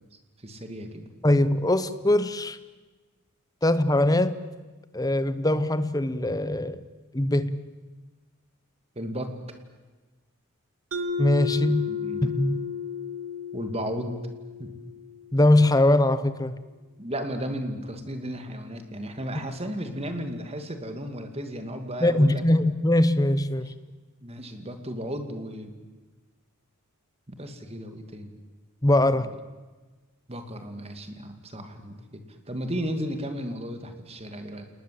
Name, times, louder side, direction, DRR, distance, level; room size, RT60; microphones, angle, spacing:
voice 1, 0.4-1.1 9.0-9.3 11.6-12.4 13.5-14.2 14.6-14.7 17.0-22.4 24.2-25.8 27.3-28.4 30.3-34.7, equal, 30° right, 7 dB, 2.5 m, -34 dB
voice 2, 1.2-2.6 3.6-4.4 4.9-6.8 7.1-7.6 11.2-11.9 12.2-12.6 15.3-16.6 22.0-23.7 28.8-29.3, left 1 dB, 15° left, 14 dB, 1.0 m, -22 dB
Mallet percussion, 10.9-15.5, left 6 dB, 85° right, 2.3 m, -33 dB
29.0 x 20.0 x 7.8 m, 1.3 s
head